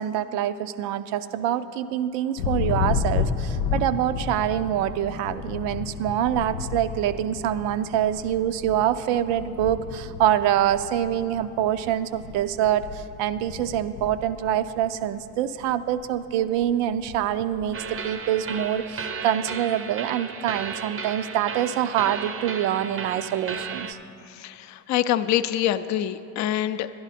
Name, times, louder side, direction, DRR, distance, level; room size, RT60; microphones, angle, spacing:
voice 1, 0.0-24.0, right 11 dB, 70° right, 12 dB, 0.6 m, -25 dB
Thunder, 2.4-15.3 15.6-16.2 16.5-18.0, left 6 dB, 85° left, 0.6 m, -32 dB
sound 1, 17.7-23.9, right 5 dB, 30° right, 0.6 m, -34 dB
voice 2, 24.3-26.9, left 12 dB, 40° left, 12 dB, 0.4 m, -25 dB
11.5 x 11.0 x 4.2 m, 2.8 s
hypercardioid pair, 55°, 46 cm